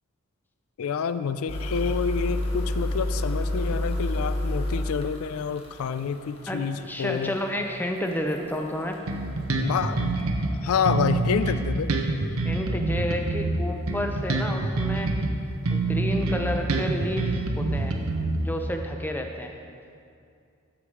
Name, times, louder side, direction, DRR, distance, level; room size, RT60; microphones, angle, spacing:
voice 1, 0.8-7.4 9.6-10.2 10.6-11.9, left 6 dB, 80° left, 12 dB, 0.4 m, -28 dB
sound 1, 1.5-11.5, left 1 dB, 25° left, 1.0 m, -31 dB
voice 2, 6.5-9.0 12.4-15.1 15.7-17.9 18.4-19.5, equal, 10° left, 3 dB, 0.6 m, -30 dB
Bass guitar, 9.1-10.5 10.8-15.3 15.6-18.7, right 2 dB, 80° right, 0.8 m, -26 dB
14.0 x 4.8 x 4.9 m, 2.4 s
head